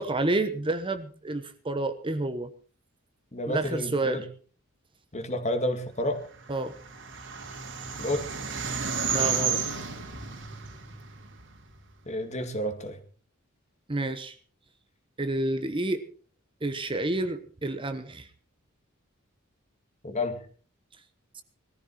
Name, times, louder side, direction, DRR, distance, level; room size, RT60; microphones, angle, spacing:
voice 1, 0.0-2.5 3.5-4.2 6.5-6.7 9.1-9.6 13.9-14.3 15.2-16.0 16.6-18.2, right 2 dB, 25° right, 10 dB, 1.0 m, -29 dB
voice 2, 3.3-4.2 5.1-6.2 8.0-8.3 12.1-13.0 20.0-20.4, left 1 dB, 35° left, 7 dB, 2.2 m, -30 dB
sound 1, 6.4-11.8, right 6 dB, 60° right, 2.8 m, -32 dB
20.0 x 14.0 x 4.3 m, 0.40 s
head